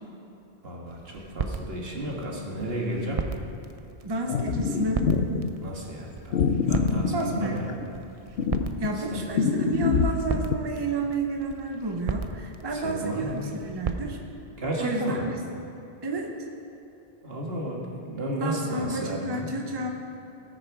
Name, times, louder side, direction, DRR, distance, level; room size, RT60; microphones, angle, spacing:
voice 1, 0.6-3.2 5.6-6.4 6.7-7.7 9.1-9.2 12.7-13.6 14.6-15.3 17.2-19.5, right 1 dB, 70° right, -2 dB, 2.0 m, -32 dB
sound 1, 0.9-14.0, right 5 dB, 45° right, 0.5 m, -37 dB
voice 2, 4.0-5.1 7.1-7.6 8.8-14.2 14.8-15.4 16.0-16.3 18.4-19.9, right 2 dB, 25° right, 2 dB, 0.9 m, -31 dB
sound 2, 4.3-5.5 6.3-7.9 8.4-10.6, left 6 dB, 80° left, 0.9 m, -25 dB
18.5 x 6.6 x 4.8 m, 2.8 s
omnidirectional pair, 1.0 m